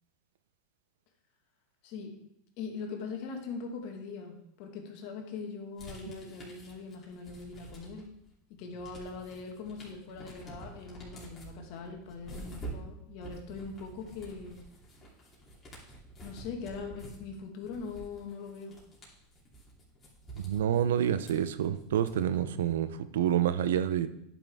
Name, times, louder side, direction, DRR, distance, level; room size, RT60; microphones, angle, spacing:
voice 1, 1.8-2.2 2.6-8.1 8.6-14.6 16.2-18.8, left 4 dB, 60° left, 3 dB, 1.7 m, -41 dB
sound 1, 5.8-8.2 8.5-22.5, right 2 dB, 25° left, 2.9 m, -48 dB
voice 2, 20.4-24.1, right 10 dB, 90° right, 12 dB, 0.6 m, -28 dB
10.5 x 5.8 x 3.5 m, 0.77 s
supercardioid pair, 130°, 0 cm